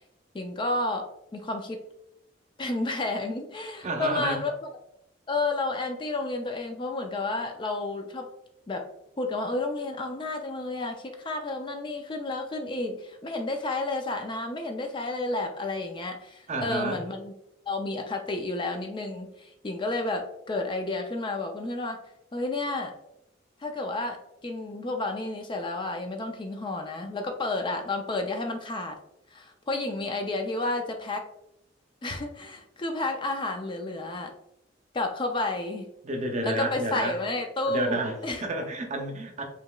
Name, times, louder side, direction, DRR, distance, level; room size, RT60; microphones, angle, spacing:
voice 1, 0.3-1.8 2.6-4.5 5.3-8.3 8.7-8.9 9.2-17.3 17.7-22.0 22.3-22.9 23.6-29.0 29.3-31.2 32.0-34.3 34.9-35.9 36.4-38.4, left 2 dB, 25° left, 4 dB, 0.4 m, -31 dB
voice 2, 3.8-4.4 16.5-17.0 36.0-37.1 37.7-38.2 38.4-39.4, right 2 dB, 40° right, 3 dB, 0.6 m, -30 dB
5.0 x 2.9 x 2.3 m, 0.81 s
head